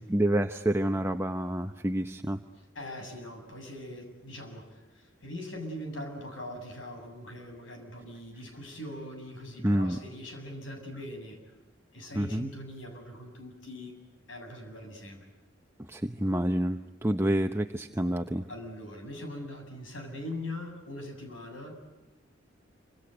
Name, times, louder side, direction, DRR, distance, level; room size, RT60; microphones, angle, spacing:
voice 1, 0.1-2.4 9.6-10.0 12.1-12.5 15.9-18.4, right 1 dB, 15° right, 6 dB, 0.9 m, -28 dB
voice 2, 2.6-11.4 11.9-14.0 14.3-15.3 18.5-21.7, left 1 dB, 80° left, 4 dB, 7.7 m, -41 dB
27.5 x 26.0 x 8.0 m, 1.0 s
head